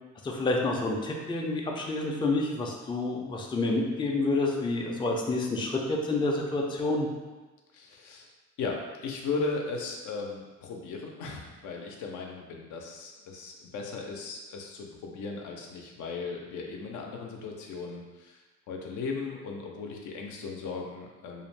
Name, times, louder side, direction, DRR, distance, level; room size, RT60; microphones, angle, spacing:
voice 1, 0.2-7.1, left 2 dB, 15° left, 0 dB, 0.4 m, -28 dB
voice 2, 7.7-8.3 8.6-21.4, left 4 dB, 80° left, 0 dB, 0.5 m, -37 dB
2.5 x 2.1 x 3.1 m, 1.2 s
cardioid pair, 90°, 30 cm